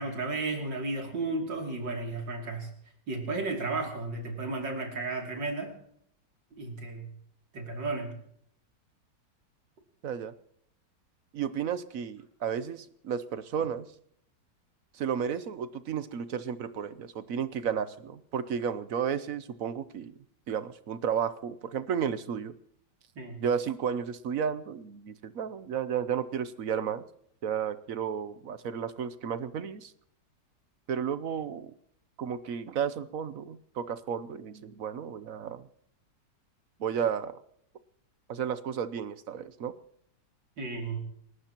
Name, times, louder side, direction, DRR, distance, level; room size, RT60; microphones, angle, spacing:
voice 1, 0.0-2.7 3.1-5.7 6.6-7.1 7.5-8.1 23.2-23.4 40.6-41.0, right 3 dB, 85° right, 1 dB, 3.5 m, -33 dB
voice 2, 11.3-13.9 14.9-20.1 20.5-22.5 23.4-27.0 27.4-29.9 30.9-31.7 32.2-35.6 36.8-37.4 38.3-39.7, right 8 dB, 60° right, 13 dB, 1.0 m, -33 dB
29.0 x 14.5 x 3.0 m, 0.69 s
omnidirectional pair, 1.9 m